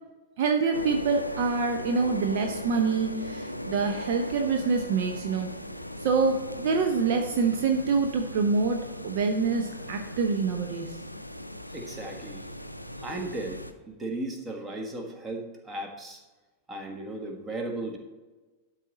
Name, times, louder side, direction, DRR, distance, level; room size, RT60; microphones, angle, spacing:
voice 1, 0.4-5.6 6.0-11.0, right 4 dB, 50° right, 4 dB, 0.7 m, -26 dB
sound 1, 0.7-13.7, left 1 dB, 90° left, 0.4 m, -38 dB
voice 2, 11.7-12.5 13.0-16.2 16.7-18.0, right 2 dB, 20° right, 3 dB, 1.4 m, -36 dB
12.0 x 4.2 x 4.1 m, 1.2 s
figure-of-eight pair, 90°, 0 cm